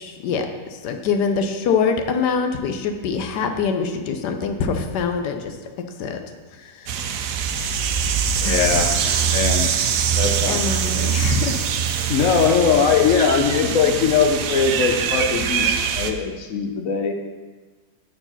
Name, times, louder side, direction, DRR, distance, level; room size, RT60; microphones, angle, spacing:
voice 1, 0.0-5.6 6.0-6.2 6.6-7.3 7.7-7.8 8.4-9.4 10.5-11.5 11.9-12.1 12.7-12.9, left 5 dB, 85° left, 6 dB, 1.3 m, -25 dB
sound 1, 6.9-16.1, right 8 dB, 70° right, 0.9 m, -23 dB
voice 2, 8.3-8.9 9.2-9.7 10.1-11.1 12.1-17.1, left 6 dB, 65° left, 4 dB, 0.9 m, -21 dB
6.9 x 4.5 x 5.7 m, 1.3 s
omnidirectional pair, 1.7 m